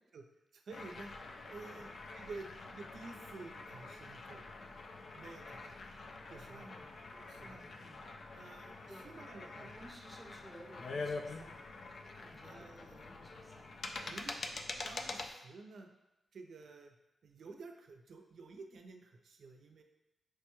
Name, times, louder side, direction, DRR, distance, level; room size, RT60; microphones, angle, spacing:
voice 1, 0.5-1.1 1.5-4.4 5.1-5.7 6.3-6.7 7.1-7.6 8.3-9.7 12.4-13.0 14.0-14.3 14.8-15.9 16.3-17.0 17.2-19.8, right 3 dB, 75° right, 4 dB, 0.4 m, -51 dB
sound 1, 0.7-15.3, left 3 dB, 65° left, 0.3 m, -46 dB
voice 2, 6.5-7.0 7.4-8.0 8.9-9.2 9.5-13.8, right 1 dB, 20° right, 1 dB, 0.7 m, -57 dB
4.6 x 2.2 x 3.0 m, 1.0 s
cardioid pair, 70°, 0 cm